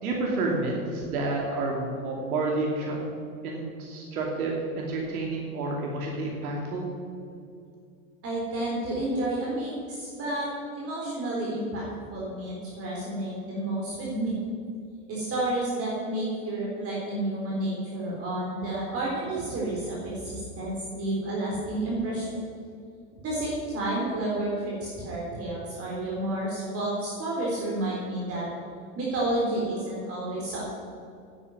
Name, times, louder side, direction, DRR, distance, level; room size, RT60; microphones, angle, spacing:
voice 1, 0.0-3.0 3.4-6.9, right 2 dB, 80° right, -1 dB, 2.8 m, -29 dB
voice 2, 8.2-10.5 10.7-11.9 12.1-14.4 15.1-22.3 23.2-28.5 29.0-30.6, right 1 dB, 30° right, -5 dB, 3.9 m, -30 dB
9.7 x 9.4 x 9.2 m, 2.4 s
supercardioid pair, 125°, 43 cm